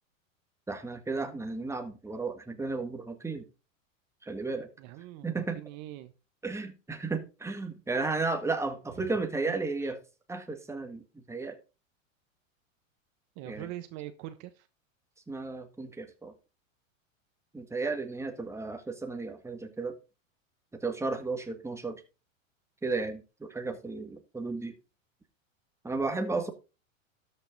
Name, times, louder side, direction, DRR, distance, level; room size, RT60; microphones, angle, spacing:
voice 1, 0.7-3.4 4.2-4.7 5.2-5.6 6.4-10.0 10.3-11.6 13.5-13.7 15.3-16.3 17.5-19.9 20.7-22.0 22.8-24.7 25.8-26.5, right 3 dB, 5° right, 6 dB, 1.7 m, -34 dB
voice 2, 4.8-6.1 8.9-9.1 9.4-9.9 13.4-14.7, right 14 dB, 45° right, 10 dB, 1.0 m, -43 dB
12.5 x 5.8 x 4.0 m, 0.31 s
hypercardioid pair, 100°, 40 cm